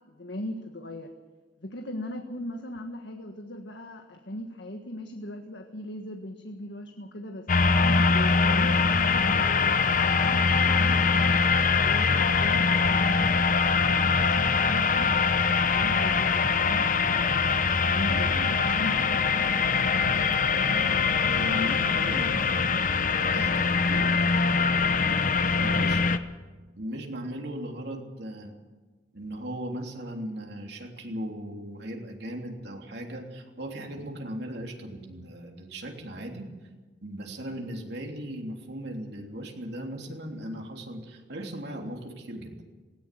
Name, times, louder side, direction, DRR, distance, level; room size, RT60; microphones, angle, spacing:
voice 1, 0.1-1.1 1.6-9.7 10.2-13.4 13.8-15.1 15.6-19.5 22.3-22.4, left 1 dB, 80° left, 4 dB, 1.6 m, -39 dB
sound 1, 7.5-26.2, left 5 dB, 50° left, 1.0 m, -23 dB
voice 2, 18.1-19.2 19.9-21.0 21.3-22.6 23.3-24.0 25.2-25.3 25.6-26.0 26.7-28.5 29.1-36.5 37.0-42.6, equal, 65° right, 1 dB, 3.3 m, -38 dB
18.5 x 18.0 x 7.7 m, 1.3 s
head